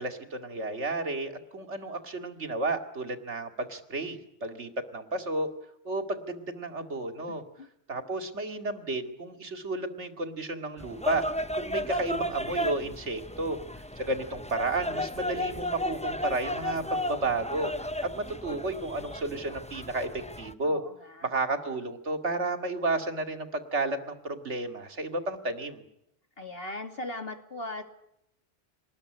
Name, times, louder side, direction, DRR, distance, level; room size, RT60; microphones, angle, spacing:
voice 1, 0.0-5.5 5.8-7.4 7.9-11.2 11.5-13.6 14.0-17.9 18.2-20.8 21.2-25.8, right 2 dB, 85° right, 7 dB, 2.7 m, -32 dB
sound 1, 10.8-20.5, equal, 5° left, 0.8 m, -34 dB
voice 2, 20.6-21.3 26.4-27.8, left 2 dB, 55° left, 6 dB, 3.0 m, -38 dB
26.0 x 20.5 x 10.0 m, 0.81 s
omnidirectional pair, 1.2 m